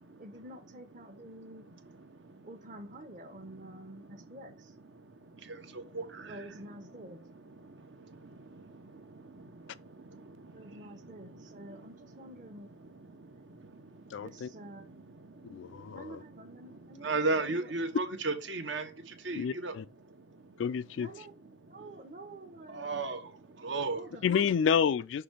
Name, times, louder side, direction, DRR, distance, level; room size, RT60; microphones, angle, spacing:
voice 1, 0.2-1.7 2.4-4.7 6.2-7.2 10.5-12.7 14.2-14.8 15.9-17.7 21.0-21.3 21.6-23.1 23.9-24.2, right 1 dB, 40° right, 0.9 m, -48 dB
voice 2, 2.0-2.5 3.5-3.6 4.1-4.2 4.9-6.4 7.5-12.3 12.8-14.3 14.8-16.0 17.0-19.7 20.2-20.6 21.8-22.1 22.7-24.1, right 3 dB, 70° right, 1.0 m, -38 dB
voice 3, 14.1-14.5 15.4-16.2 19.3-19.9 20.6-21.1 24.2-25.2, left 7 dB, 70° left, 0.3 m, -29 dB
5.9 x 3.2 x 5.2 m
head